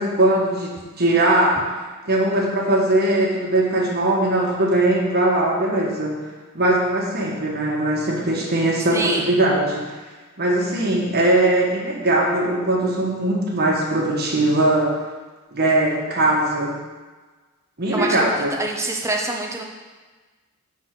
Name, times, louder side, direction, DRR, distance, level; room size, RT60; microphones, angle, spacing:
voice 1, 0.0-1.7 2.1-6.2 6.5-9.9 10.4-14.9 15.5-16.7 17.8-18.5, right 1 dB, 45° right, -2 dB, 1.4 m, -20 dB
voice 2, 8.9-9.4 17.9-18.3 18.5-19.6, right 2 dB, 15° right, 1 dB, 0.7 m, -25 dB
6.4 x 4.2 x 5.9 m, 1.3 s
head